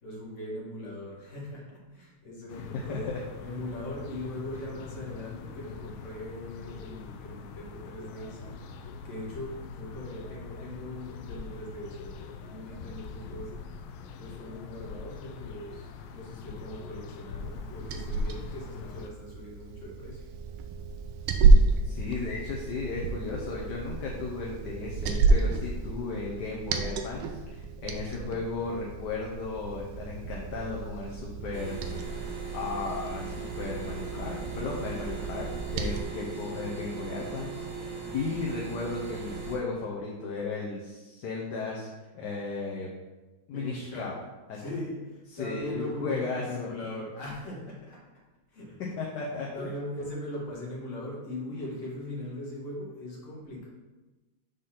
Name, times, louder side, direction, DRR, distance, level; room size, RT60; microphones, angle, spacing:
voice 1, 0.0-3.1 3.4-8.6 9.0-13.7 14.2-20.3 43.5-44.1 44.5-48.0 48.5-48.8 49.5-53.7, left 1 dB, 40° left, -4 dB, 1.8 m, -40 dB
sound 1, 2.5-19.1, left 5 dB, 80° left, 1.4 m, -43 dB
Liquid, 17.4-36.0, right 3 dB, 85° right, 1.4 m, -29 dB
voice 2, 21.8-41.9 42.1-42.9 43.5-44.1 44.5-44.6 45.3-46.7 49.0-49.7, left 4 dB, 60° left, -3 dB, 1.2 m, -35 dB
sound 2, 31.5-39.6, right 4 dB, 40° right, 1.7 m, -39 dB
5.1 x 4.1 x 5.7 m, 1.2 s
omnidirectional pair, 2.3 m